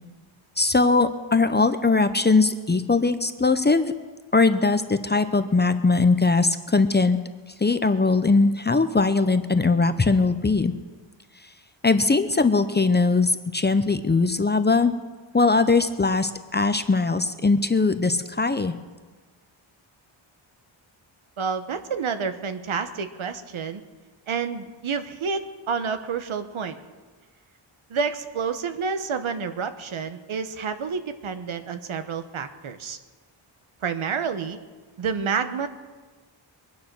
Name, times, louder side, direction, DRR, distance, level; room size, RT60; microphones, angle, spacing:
voice 1, 0.6-3.9 4.3-7.2 7.6-10.7 11.8-14.9 15.3-18.7, left 3 dB, 20° left, 10 dB, 0.6 m, -20 dB
voice 2, 21.4-23.8 24.3-26.8 27.9-33.0 33.8-34.6 35.0-35.7, right 5 dB, 75° right, 9 dB, 1.2 m, -29 dB
22.0 x 9.8 x 6.1 m, 1.4 s
wide cardioid pair, 140°, 49 cm